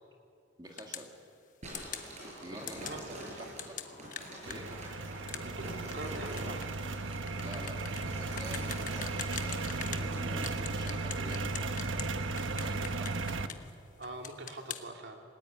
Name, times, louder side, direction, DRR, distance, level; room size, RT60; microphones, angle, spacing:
voice 1, 0.6-1.1 2.4-3.2 3.6-3.7 4.4-4.7 7.3-13.3, equal, 20° right, 1 dB, 2.2 m, -48 dB
sound 1, 0.8-1.1 1.7-2.1 2.7-3.0 3.6-10.1 10.4-12.1 12.4-13.7 14.0-14.8, left 9 dB, 40° left, 1.3 m, -42 dB
sound 2, 1.6-10.4, right 1 dB, 35° right, 7.0 m, -46 dB
voice 2, 2.8-3.6 5.4-6.8 13.2-13.3 14.0-15.2, right 2 dB, 60° right, 2 dB, 3.0 m, -44 dB
sound 3, 4.5-13.5, right 3 dB, 80° right, 1.2 m, -35 dB
28.0 x 18.5 x 9.6 m, 2.4 s
head